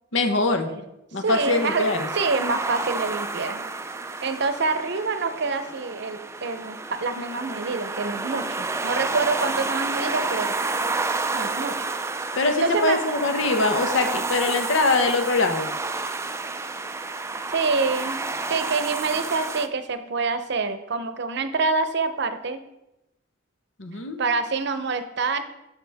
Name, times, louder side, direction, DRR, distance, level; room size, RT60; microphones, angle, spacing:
voice 1, 0.1-0.7 1.1-2.1 12.4-15.7 23.8-24.2, left 3 dB, 70° left, 6 dB, 1.0 m, -23 dB
voice 2, 1.2-1.9 2.1-3.7 4.2-10.5 11.3-11.8 12.6-13.0 17.5-18.2 18.5-22.6 24.2-25.4, right 4 dB, 60° right, 10 dB, 0.7 m, -26 dB
sound 1, 1.3-19.7, right 3 dB, 15° right, 0.3 m, -30 dB
11.5 x 6.3 x 3.5 m, 0.93 s
head